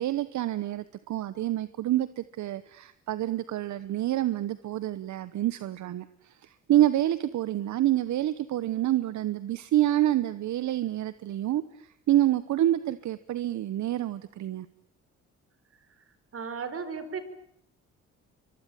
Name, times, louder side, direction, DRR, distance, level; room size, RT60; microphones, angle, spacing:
voice 1, 0.0-11.6 12.1-14.7, right 13 dB, 70° right, 15 dB, 1.1 m, -27 dB
voice 2, 16.3-17.2, right 5 dB, 50° right, 11 dB, 4.6 m, -35 dB
24.0 x 23.0 x 9.1 m, 0.70 s
cardioid pair, 90°, 30 cm